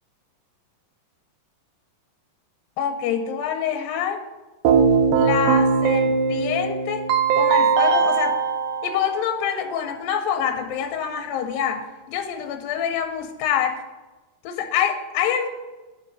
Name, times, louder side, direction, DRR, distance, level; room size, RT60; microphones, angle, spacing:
voice 1, 2.8-4.2 5.1-7.1 7.3-8.4 8.8-13.8 14.4-15.5, left 8 dB, 90° left, 7 dB, 2.5 m, -26 dB
Keyboard (musical), 4.7-9.6, right 5 dB, 80° right, 2.3 m, -20 dB
9.3 x 7.0 x 4.0 m, 1.2 s
omnidirectional pair, 4.0 m